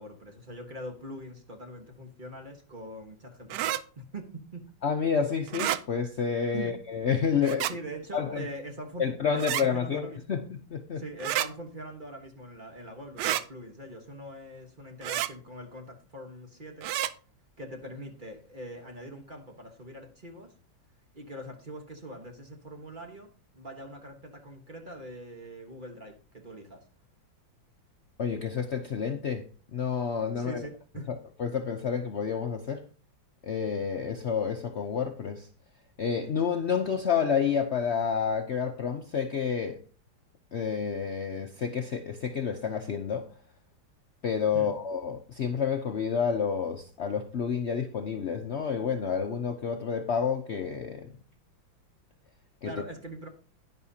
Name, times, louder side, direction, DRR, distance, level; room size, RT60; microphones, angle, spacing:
voice 1, 0.0-3.7 4.0-4.7 6.5-6.8 7.6-9.0 9.3-10.4 11.0-16.9 17.6-20.5 21.1-26.8 30.3-31.1 44.5-44.7 52.6-53.3, right 1 dB, 30° right, 1.2 m, -42 dB
sound 1, 3.5-3.8 5.5-5.8 7.4-7.7 9.4-9.7 11.2-11.5 13.2-13.4 15.0-15.3 16.8-17.1, right 12 dB, 75° right, 1.0 m, -29 dB
voice 2, 4.8-7.7 8.1-8.4 9.0-11.0 28.2-29.4 29.7-30.6 31.4-32.8 33.4-35.5 36.0-39.8 40.5-43.3 44.2-51.1 52.6-52.7, left 6 dB, 80° left, 0.6 m, -29 dB
10.5 x 10.0 x 2.8 m
omnidirectional pair, 2.1 m